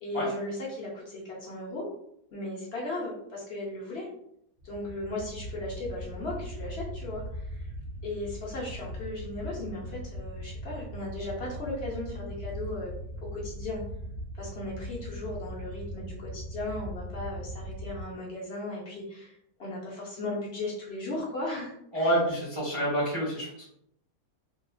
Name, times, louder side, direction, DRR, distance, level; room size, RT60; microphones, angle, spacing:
voice 1, 0.0-1.9 2.3-4.1 4.6-7.7 8.0-12.9 13.2-13.8 14.3-22.1, left 2 dB, 60° left, -4 dB, 0.7 m, -36 dB
sound 1, 4.6-18.0, equal, 65° right, 0.9 m, -39 dB
voice 2, 21.9-23.7, right 1 dB, 30° right, -7 dB, 0.5 m, -28 dB
2.8 x 2.3 x 2.3 m, 0.73 s
omnidirectional pair, 1.8 m